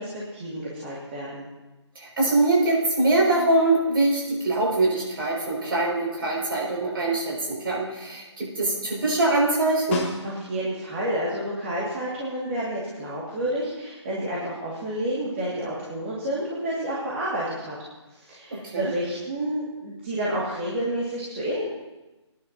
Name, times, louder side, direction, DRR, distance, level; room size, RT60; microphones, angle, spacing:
voice 1, 0.0-1.4 10.2-17.8 18.1-21.6, right 1 dB, 25° right, -7 dB, 2.1 m, -30 dB
voice 2, 2.0-10.1 18.5-18.9, right 2 dB, 50° right, -3 dB, 5.8 m, -23 dB
Snare drum, 9.9-10.8 15.3-15.4, left 4 dB, 25° left, 1.8 m, -32 dB
24.5 x 10.5 x 2.8 m, 1.1 s
hypercardioid pair, 170°, 15 cm